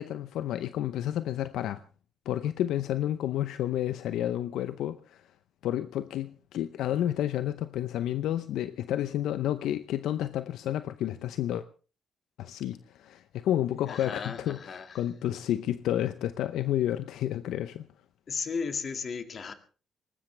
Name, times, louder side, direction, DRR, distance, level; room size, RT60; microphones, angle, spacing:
voice 1, 0.0-1.8 2.3-5.2 5.6-11.6 12.4-17.9, left 12 dB, 85° left, 0.7 m, -30 dB
voice 2, 13.9-15.0 18.3-19.5, left 5 dB, 50° left, 2.1 m, -35 dB
19.5 x 19.5 x 3.4 m
cardioid pair, 90°, 0 cm